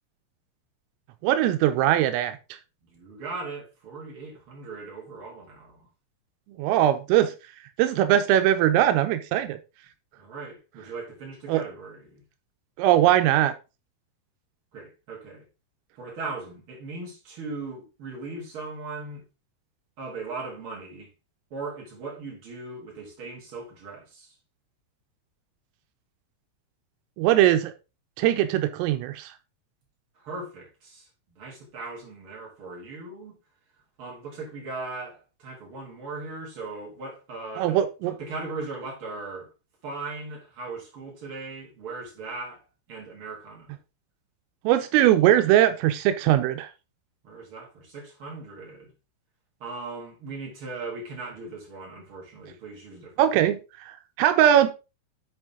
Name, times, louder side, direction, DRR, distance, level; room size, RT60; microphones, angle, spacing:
voice 1, 1.2-2.4 6.6-7.3 7.8-9.6 11.5-11.6 12.8-13.5 27.2-27.7 28.2-29.3 37.6-38.1 44.6-46.7 53.2-53.6 54.2-54.7, right 12 dB, 90° right, 3.4 m, -20 dB
voice 2, 2.8-5.8 10.2-12.2 14.7-15.4 16.0-19.2 20.0-21.1 21.5-24.3 30.2-33.4 34.0-39.5 39.8-42.6 42.9-43.8 47.2-48.9 49.6-53.5, right 3 dB, 30° right, 3.7 m, -38 dB
9.1 x 5.3 x 3.8 m
omnidirectional pair, 5.8 m